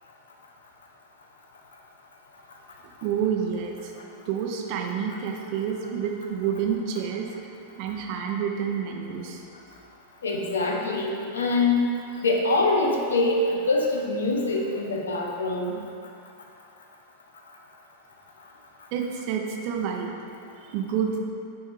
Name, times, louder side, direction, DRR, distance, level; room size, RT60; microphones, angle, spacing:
voice 1, 3.0-3.9 4.3-7.3 7.8-9.4 18.9-20.1 20.7-21.2, right 7 dB, 45° right, 2 dB, 0.7 m, -28 dB
voice 2, 10.2-11.9 12.2-15.7, left 2 dB, 70° left, 0 dB, 0.8 m, -24 dB
6.6 x 4.5 x 4.7 m, 2.5 s
figure-of-eight pair, 90°, 0 cm